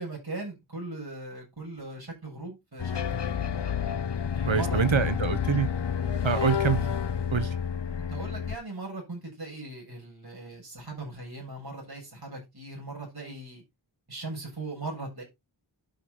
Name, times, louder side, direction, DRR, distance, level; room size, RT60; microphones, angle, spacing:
voice 1, 0.0-3.3 4.3-5.0 6.3-6.5 8.1-13.6 14.1-15.2, right 2 dB, 55° right, 7.4 m, -39 dB
sound 1, 2.8-8.6, left 8 dB, 65° left, 0.8 m, -29 dB
voice 2, 4.5-5.7 6.2-6.8 7.3-7.6, right 7 dB, 85° right, 1.3 m, -25 dB
10.5 x 6.5 x 4.0 m
wide cardioid pair, 45°, 46 cm